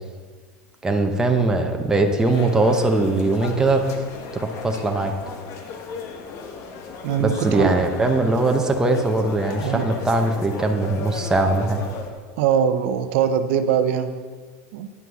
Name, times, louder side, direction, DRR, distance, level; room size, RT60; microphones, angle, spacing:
voice 1, 0.8-3.8 4.3-5.1 7.2-11.8, right 2 dB, 10° right, 3 dB, 0.9 m, -21 dB
sound 1, 2.2-12.1, left 5 dB, 45° left, 1.2 m, -36 dB
voice 2, 7.0-7.7 9.6-9.9 12.4-14.1 14.7-14.9, right 8 dB, 70° right, 9 dB, 0.7 m, -22 dB
9.7 x 5.9 x 7.0 m, 1.5 s
supercardioid pair, 145°, 7 cm